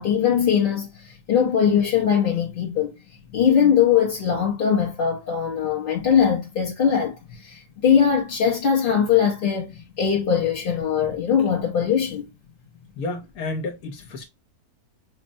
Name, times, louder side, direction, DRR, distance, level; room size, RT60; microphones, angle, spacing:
voice 1, 0.0-12.3, left 8 dB, 45° left, 0.7 m, -21 dB
voice 2, 13.0-14.2, left 2 dB, 75° left, 1.3 m, -31 dB
6.1 x 2.1 x 2.6 m
omnidirectional pair, 1.6 m